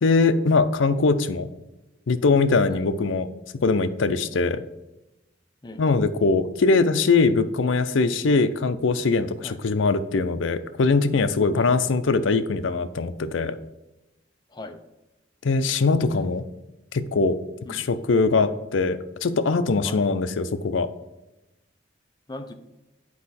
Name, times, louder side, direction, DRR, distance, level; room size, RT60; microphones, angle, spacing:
voice 1, 0.0-1.5 2.1-3.3 3.6-4.6 5.8-13.6 15.4-16.4 16.9-17.4 17.7-20.9, left 4 dB, 80° left, 11 dB, 0.5 m, -22 dB
voice 2, 2.7-2.8 5.6-5.8 9.4-9.6 11.5-11.6 14.5-14.8 17.6-17.8 18.4-18.5 19.8-20.0 22.3-22.5, left 1 dB, 20° left, 6 dB, 0.6 m, -38 dB
8.4 x 4.8 x 4.2 m, 0.96 s
head